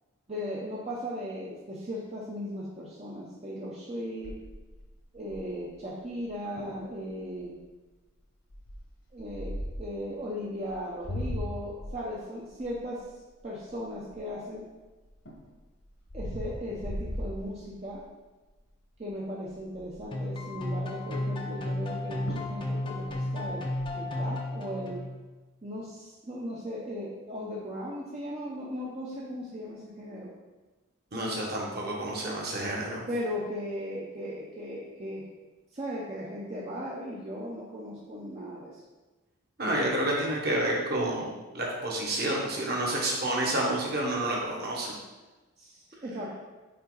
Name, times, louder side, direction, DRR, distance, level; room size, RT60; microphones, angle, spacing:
voice 1, 0.3-4.3 5.1-7.6 9.1-13.0 13.4-14.6 16.1-18.0 19.0-25.0 25.6-30.3 33.1-35.3 35.7-38.8 45.6-46.4, equal, 30° right, -5 dB, 0.7 m, -37 dB
Falling Plank, 4.2-5.7 6.2-6.3 6.6-6.8 7.4-7.7 8.5-10.0 10.6-14.5 15.0-18.1 18.5-18.8 19.1-19.2 19.4-20.2 21.9-22.0 22.3-22.6 22.9-23.9, equal, 65° left, 1.3 m, -39 dB
sound 1, 20.1-25.3, left 1 dB, 25° left, 0.6 m, -33 dB
voice 2, 31.1-33.0 39.6-44.9, right 1 dB, 45° right, -2 dB, 1.3 m, -29 dB
5.4 x 4.8 x 3.9 m, 1.2 s
head